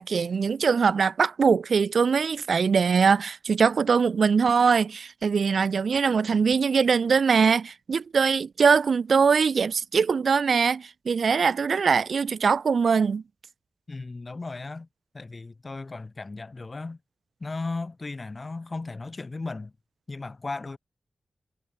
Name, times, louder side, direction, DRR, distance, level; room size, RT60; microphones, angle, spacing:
voice 1, 0.0-13.2, right 5 dB, 70° right, 0.4 m, -22 dB
voice 2, 13.9-14.9 15.1-17.0 17.4-19.7 20.1-20.8, left 3 dB, 35° left, 4.3 m, -35 dB
wide cardioid pair, 145°, 0 cm